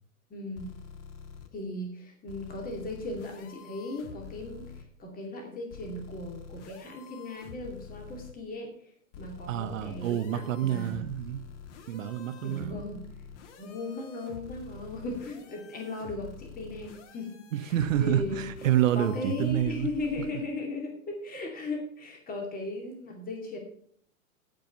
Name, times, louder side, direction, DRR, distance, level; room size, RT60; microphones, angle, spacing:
voice 1, 0.3-0.7 1.5-8.9 9.2-11.0 12.4-13.0 13.6-17.7 18.0-18.5 18.9-23.6, left 2 dB, 20° left, 2 dB, 2.5 m, -37 dB
sound 1, 0.5-1.5 2.3-4.8 5.7-8.3 9.1-20.3, left 7 dB, 55° left, 1.8 m, -47 dB
voice 2, 9.5-11.5 11.9-12.8 17.5-19.9, right 11 dB, 60° right, 11 dB, 1.2 m, -28 dB
16.0 x 5.4 x 5.5 m, 0.63 s
hypercardioid pair, 105°, 43 cm